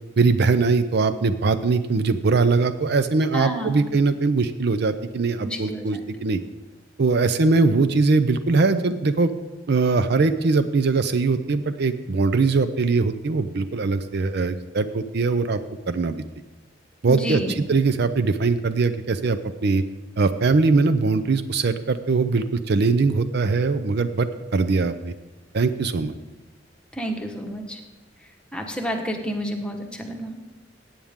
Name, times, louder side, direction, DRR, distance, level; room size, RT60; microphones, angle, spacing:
voice 1, 0.2-6.4 7.0-9.3 9.7-15.6 15.9-16.2 17.0-19.8 20.2-25.1 25.5-26.1, right 4 dB, 60° right, 11 dB, 0.5 m, -21 dB
voice 2, 3.3-3.7 5.4-6.0 17.1-17.6 27.0-27.8 28.5-30.4, equal, 5° left, 2 dB, 1.3 m, -30 dB
16.5 x 8.8 x 3.6 m, 1.2 s
head